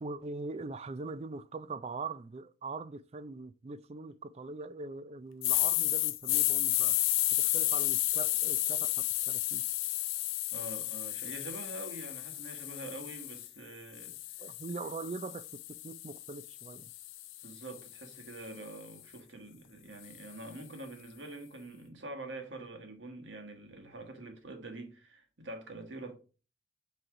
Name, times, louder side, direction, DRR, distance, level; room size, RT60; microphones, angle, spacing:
voice 1, 0.0-7.0 7.4-9.6 14.4-16.9, right 3 dB, 30° right, 0.3 m, -42 dB
sound 1, 5.4-13.5 14.0-18.2, left 17 dB, 90° left, 0.4 m, -32 dB
voice 2, 10.5-14.2 17.4-26.2, right 2 dB, 70° right, 1.4 m, -45 dB
7.6 x 3.2 x 4.8 m
head